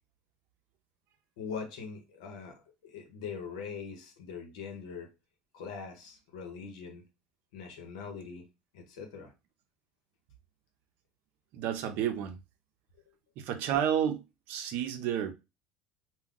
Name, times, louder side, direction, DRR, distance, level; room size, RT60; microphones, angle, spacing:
voice 1, 1.4-5.1 5.5-7.0 7.5-8.5 8.7-9.3, left 6 dB, 90° left, 0.9 m, -42 dB
voice 2, 11.5-12.4 13.4-15.3, right 9 dB, 65° right, 0.6 m, -31 dB
2.4 x 2.2 x 3.7 m
supercardioid pair, 110°, 4 cm